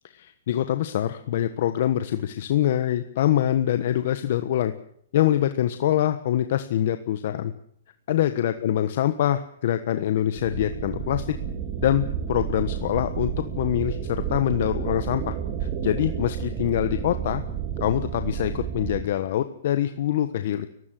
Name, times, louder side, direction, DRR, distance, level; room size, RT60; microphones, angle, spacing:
voice 1, 0.2-4.7 5.1-7.5 8.1-11.2 11.8-13.3 13.6-17.4 17.8-20.7, left 11 dB, 50° left, 9 dB, 1.3 m, -24 dB
sound 1, 10.4-19.0, right 8 dB, 30° right, 2.7 m, -31 dB
30.0 x 16.0 x 7.8 m, 0.69 s
hypercardioid pair, 160°, 0 cm